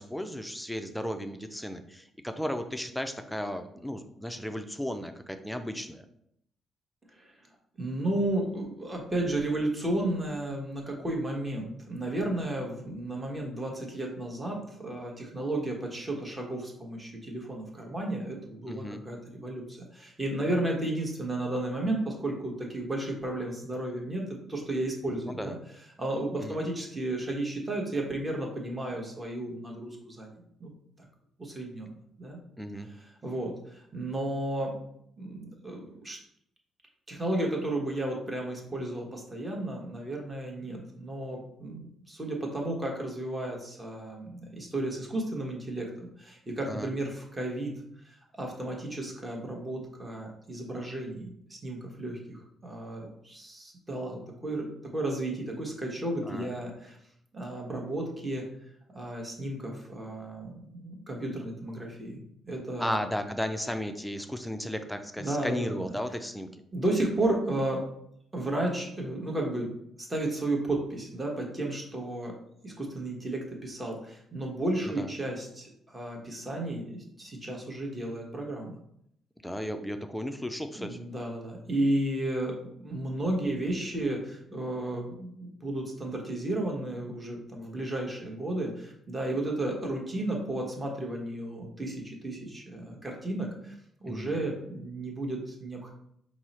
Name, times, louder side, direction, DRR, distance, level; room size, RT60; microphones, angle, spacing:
voice 1, 0.0-6.0 18.7-19.0 25.1-25.6 26.4-26.6 32.6-32.9 46.6-46.9 56.3-56.5 62.8-66.5 74.8-75.1 79.4-81.0 94.1-94.4, equal, 5° left, 7 dB, 0.4 m, -35 dB
voice 2, 7.8-25.6 26.0-30.7 31.0-31.1 31.4-31.9 32.2-32.4 32.8-34.8 35.2-36.2 37.1-47.7 48.0-51.3 51.6-57.0 57.3-58.5 58.9-62.2 62.5-63.0 65.2-65.9 66.7-67.9 68.3-72.3 72.6-78.7 80.7-93.7 94.0-95.9, right 1 dB, 20° right, 0 dB, 1.1 m, -33 dB
4.6 x 2.0 x 4.1 m, 0.72 s
cardioid pair, 90°, 0 cm